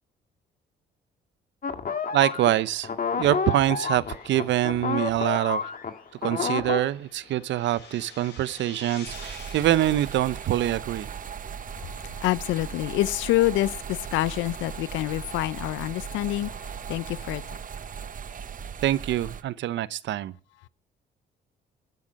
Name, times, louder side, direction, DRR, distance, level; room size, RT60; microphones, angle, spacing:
sound 1, 1.6-6.8, left 5 dB, 45° left, 1.9 m, -29 dB
voice 1, 2.1-2.9 3.2-5.6 6.2-11.1 18.8-20.3, right 13 dB, 75° right, 0.8 m, -25 dB
sound 2, 2.3-11.8, left 4 dB, 65° left, 7.0 m, -50 dB
sound 3, 9.1-19.4, right 7 dB, 45° right, 0.9 m, -38 dB
voice 2, 11.8-17.4, left 16 dB, 85° left, 0.6 m, -27 dB
12.0 x 9.3 x 6.3 m
supercardioid pair, 65°, 19 cm